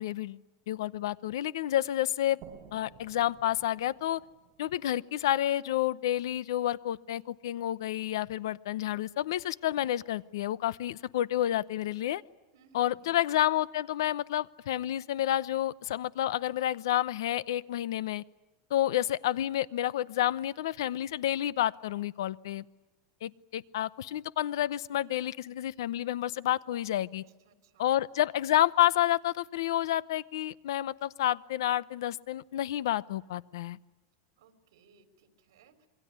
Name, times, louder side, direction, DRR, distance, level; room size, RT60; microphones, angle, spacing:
voice 1, 0.0-2.4 2.7-4.2 4.6-12.2 12.7-18.2 18.7-22.6 23.2-27.2 27.8-33.8, left 12 dB, 80° left, 20 dB, 0.8 m, -30 dB
sound 1, 2.4-5.9, right 7 dB, 30° right, 3.9 m, -55 dB
voice 2, 12.5-13.3 27.1-27.9 34.4-35.9, right 4 dB, 75° right, 9 dB, 3.6 m, -63 dB
27.0 x 22.5 x 9.6 m, 1.1 s
supercardioid pair, 175°, 2 cm